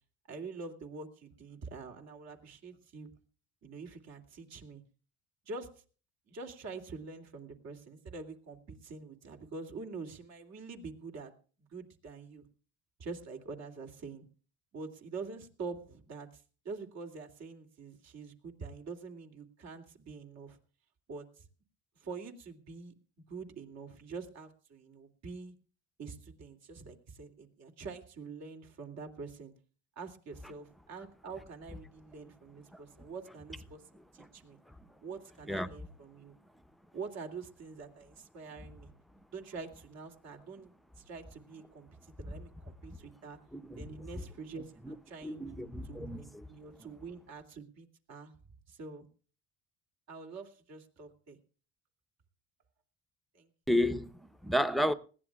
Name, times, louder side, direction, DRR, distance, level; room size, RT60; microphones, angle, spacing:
voice 1, 0.3-3.1 3.6-4.8 5.5-5.7 6.3-11.3 11.6-12.4 13.0-14.3 14.7-20.6 21.1-21.5 21.9-22.9 23.3-25.5 26.0-29.5 30.0-33.8 34.1-34.6 35.0-36.3 36.9-38.9 39.3-40.7 41.0-43.4 43.8-45.4 45.8-48.3 48.7-49.1 50.1-51.4 53.3-53.5, right 4 dB, 55° right, 2.7 m, -45 dB
voice 2, 43.5-43.9 44.8-44.9 45.2-46.4 53.7-54.9, equal, ahead, 0.8 m, -31 dB
20.5 x 16.0 x 2.3 m
supercardioid pair, 95°, 31 cm